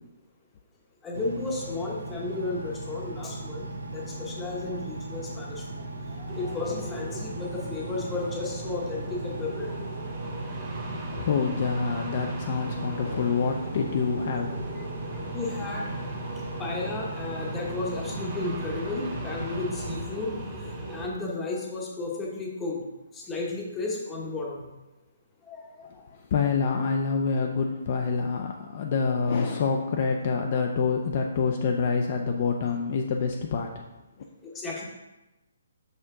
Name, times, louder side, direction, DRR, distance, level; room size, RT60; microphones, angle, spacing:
voice 1, 1.0-5.9 6.2-9.8 14.8-14.9 15.3-15.9 16.6-20.4 20.9-22.8 23.1-24.6 25.5-26.0 34.5-34.8, left 3 dB, 10° left, -2 dB, 1.0 m, -33 dB
Engine, 1.1-20.0, right 2 dB, 90° right, 1.3 m, -37 dB
sound 1, 6.3-21.1, right 1 dB, 15° right, 1.2 m, -38 dB
voice 2, 10.9-14.8 26.3-33.8, left 5 dB, 35° left, 2 dB, 0.5 m, -27 dB
6.6 x 5.7 x 3.7 m, 1.0 s
hypercardioid pair, 175°, 0 cm